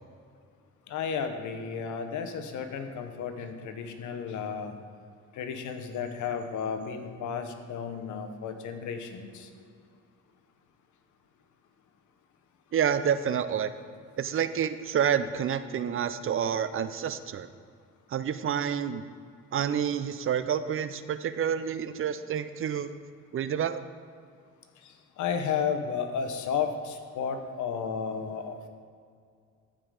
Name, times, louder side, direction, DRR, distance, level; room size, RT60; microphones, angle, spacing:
voice 1, 0.9-4.7 5.3-9.5 25.2-28.7, left 6 dB, 75° left, 7 dB, 0.9 m, -33 dB
voice 2, 12.7-13.7 14.2-17.5 18.1-19.1 19.5-22.9 23.3-23.8, right 8 dB, 45° right, 12 dB, 0.5 m, -28 dB
14.5 x 5.0 x 3.8 m, 2.2 s
cardioid pair, 90°, 30 cm